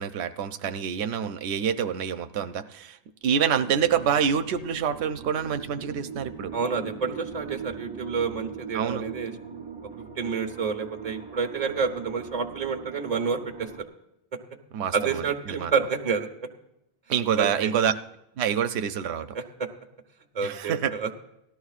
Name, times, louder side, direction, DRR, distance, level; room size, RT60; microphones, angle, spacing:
voice 1, 0.0-3.0 3.2-6.5 8.7-9.0 14.7-15.7 17.1-17.9 18.4-19.3 20.4-20.9, right 8 dB, 90° right, 9 dB, 0.8 m, -27 dB
sound 1, 3.2-13.8, right 6 dB, 55° right, 1.3 m, -41 dB
voice 2, 6.5-9.3 10.2-13.7 14.9-16.3 17.4-17.7 19.3-19.4 20.3-21.1, right 5 dB, 40° right, 5 dB, 1.3 m, -29 dB
18.0 x 13.0 x 2.4 m, 0.86 s
omnidirectional pair, 1.1 m